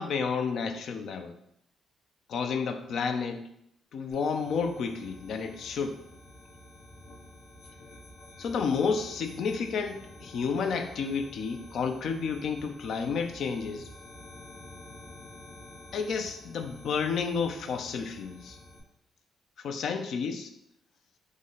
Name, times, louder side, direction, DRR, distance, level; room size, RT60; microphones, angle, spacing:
voice 1, 0.0-1.4 2.3-3.5 3.9-6.0 8.4-13.9 15.9-18.6 19.6-20.5, left 5 dB, 70° left, 6 dB, 0.4 m, -31 dB
sound 1, 4.1-18.8, left 1 dB, 90° left, 0.8 m, -49 dB
3.6 x 2.1 x 3.9 m, 0.76 s
supercardioid pair, 60°, 0 cm